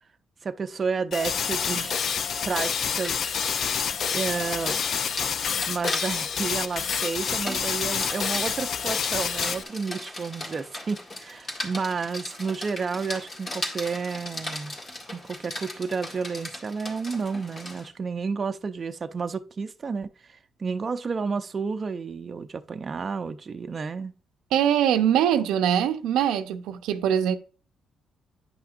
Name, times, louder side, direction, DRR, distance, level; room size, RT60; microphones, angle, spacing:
voice 1, 0.4-2.0 2.4-3.6 4.1-4.8 5.7-14.8 15.1-24.1, right 5 dB, 35° right, 0.6 m, -31 dB
sound 1, 1.1-9.6, left 7 dB, 60° left, 0.4 m, -28 dB
Rain, 2.8-17.9, left 1 dB, 35° left, 2.0 m, -38 dB
voice 2, 24.5-27.4, right 9 dB, 90° right, 0.7 m, -22 dB
9.7 x 5.7 x 2.5 m
cardioid pair, 90°, 0 cm